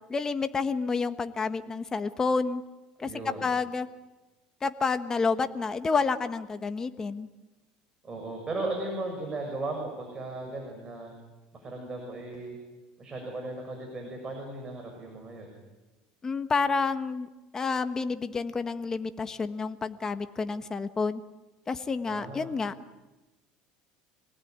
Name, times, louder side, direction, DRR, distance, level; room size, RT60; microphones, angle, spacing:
voice 1, 0.1-2.6 3.0-3.9 4.6-7.3 16.2-17.3 17.5-21.2 21.7-22.7, left 4 dB, 20° left, 9 dB, 1.4 m, -29 dB
voice 2, 3.0-3.5 8.0-11.1 11.6-12.6 13.0-15.6 22.1-22.5, right 2 dB, 25° right, 1 dB, 6.8 m, -36 dB
26.0 x 19.5 x 9.5 m, 1.1 s
supercardioid pair, 115°, 3 cm